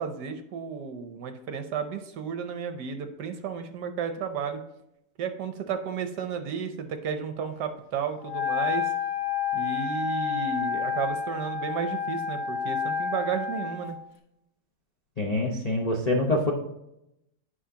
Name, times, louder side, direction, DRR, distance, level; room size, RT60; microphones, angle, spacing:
voice 1, 0.0-4.6 5.2-8.9 9.5-14.0, right 7 dB, 70° right, 7 dB, 1.1 m, -33 dB
Wind instrument woodwind instrument, 8.2-13.9, left 7 dB, 45° left, 1.2 m, -29 dB
voice 2, 15.2-16.5, left 2 dB, 75° left, -2 dB, 0.3 m, -25 dB
9.8 x 5.6 x 2.8 m, 0.83 s
omnidirectional pair, 2.2 m